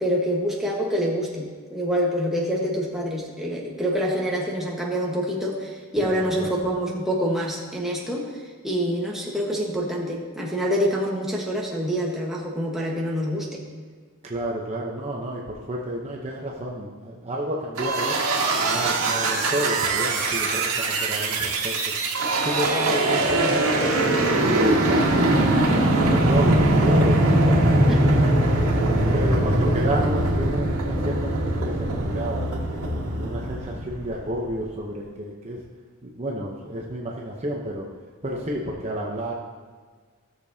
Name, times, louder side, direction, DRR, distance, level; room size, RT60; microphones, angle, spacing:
voice 1, 0.0-8.3 8.6-13.6 27.9-28.2, equal, ahead, -4 dB, 1.2 m, -26 dB
voice 2, 14.2-15.4 15.7-18.2 18.6-21.9 22.4-23.7 24.4-25.5 25.8-28.3 29.1-32.5 33.1-35.6 36.0-37.9 38.2-39.3, right 1 dB, 30° right, -2 dB, 0.8 m, -30 dB
sound 1, 17.8-34.4, right 1 dB, 90° right, 1.7 m, -21 dB
16.5 x 6.8 x 2.8 m, 1.5 s
head